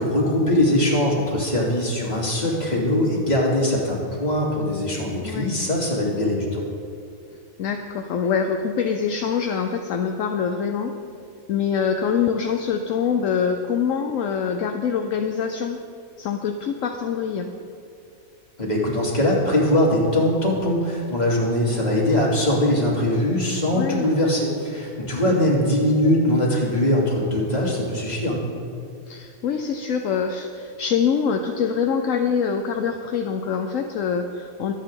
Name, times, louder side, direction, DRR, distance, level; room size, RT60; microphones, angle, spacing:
voice 1, 0.0-6.6 18.6-28.4, left 1 dB, 30° left, -4 dB, 3.0 m, -21 dB
voice 2, 5.2-5.5 7.6-10.9 11.5-15.8 16.2-17.5 23.7-24.1 29.1-34.7, left 6 dB, 70° left, 5 dB, 1.1 m, -24 dB
24.0 x 9.0 x 3.8 m, 2.4 s
omnidirectional pair, 1.5 m